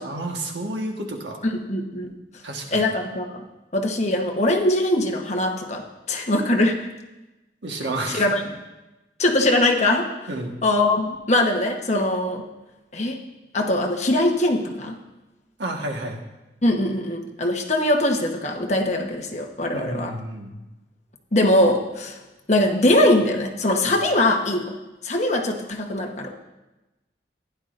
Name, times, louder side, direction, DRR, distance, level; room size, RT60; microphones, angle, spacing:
voice 1, 0.0-1.4 2.4-2.9 7.6-8.3 10.3-10.6 15.6-16.2 19.7-20.5, right 1 dB, 90° right, 2 dB, 1.5 m, -30 dB
voice 2, 1.5-2.1 2.7-3.4 3.7-5.8 6.1-6.8 8.1-8.4 9.2-10.1 10.6-12.5 12.9-13.2 13.5-15.0 16.6-20.1 21.3-22.2 22.5-24.7 25.0-26.3, left 1 dB, 40° left, 2 dB, 1.2 m, -21 dB
15.0 x 10.5 x 2.6 m, 1.0 s
head